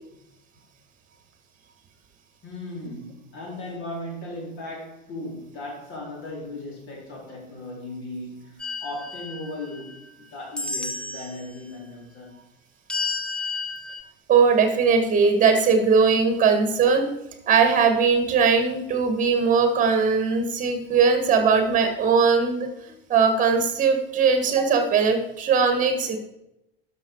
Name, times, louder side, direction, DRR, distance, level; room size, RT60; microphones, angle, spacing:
voice 1, 2.4-10.0 10.3-12.3, left 2 dB, 40° left, -2 dB, 4.1 m, -37 dB
sound 1, 8.6-10.1 10.6-11.4 12.9-14.0, left 3 dB, 5° left, 0.8 m, -32 dB
voice 2, 14.3-17.1 17.5-22.7 23.1-26.2, right 5 dB, 25° right, 6 dB, 1.7 m, -20 dB
12.5 x 6.0 x 4.7 m, 0.86 s
figure-of-eight pair, 75°, 31 cm